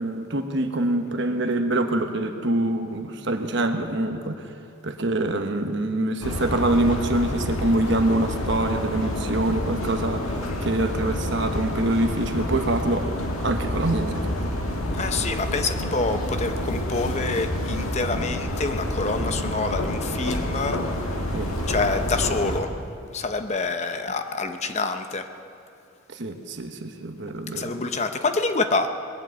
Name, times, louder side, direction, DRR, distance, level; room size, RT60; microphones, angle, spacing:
voice 1, 0.0-4.5 4.8-13.1 13.4-14.4 21.3-21.5 26.1-28.0, right 1 dB, 55° right, 6 dB, 1.0 m, -25 dB
sound 1, 6.2-22.6, left 1 dB, 85° left, 1.7 m, -28 dB
voice 2, 15.0-20.8 21.7-22.7 23.1-25.2 27.6-28.9, left 3 dB, 30° left, 7 dB, 0.7 m, -27 dB
20.5 x 7.7 x 8.1 m, 2.5 s
head